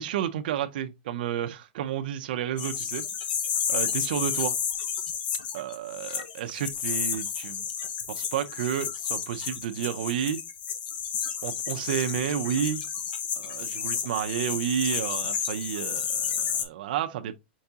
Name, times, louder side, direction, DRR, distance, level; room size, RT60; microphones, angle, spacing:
voice 1, 0.0-3.0 3.7-4.6 5.5-7.7 8.1-10.4 11.4-12.8 13.4-17.3, right 10 dB, 55° right, 0.5 m, -31 dB
sound 1, 2.6-16.6, left 7 dB, 60° left, 0.8 m, -31 dB
4.7 x 3.5 x 2.7 m
supercardioid pair, 170°, 6 cm